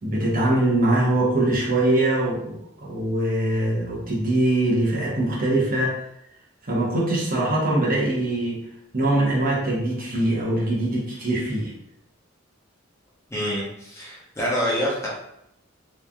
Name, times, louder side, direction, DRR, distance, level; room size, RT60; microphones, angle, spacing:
voice 1, 0.0-6.0 6.7-8.6 8.9-11.7, right 1 dB, 45° right, -5 dB, 0.8 m, -22 dB
voice 2, 13.3-15.1, equal, 15° left, -5 dB, 0.6 m, -26 dB
3.1 x 2.5 x 2.2 m, 0.79 s
head